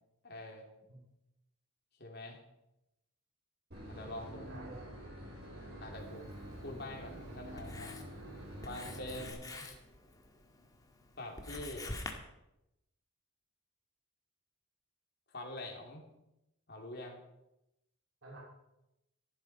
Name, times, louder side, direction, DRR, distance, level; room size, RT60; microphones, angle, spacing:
voice 1, 0.2-0.6 2.0-2.4 3.9-4.5 5.8-6.3 6.6-7.9 8.6-9.8 11.2-12.0 15.3-16.0 16.7-17.2, left 1 dB, 50° left, 1 dB, 3.1 m, -45 dB
Boat Water vehicle / Engine, 3.7-9.3, equal, 50° right, 5.6 m, -47 dB
voice 2, 4.5-4.9 5.5-5.8 9.1-9.3 18.2-18.4, right 2 dB, 65° right, -4 dB, 3.2 m, -51 dB
Writing, 5.9-12.1, left 2 dB, 15° left, 1.6 m, -48 dB
14.0 x 11.5 x 4.9 m, 0.89 s
head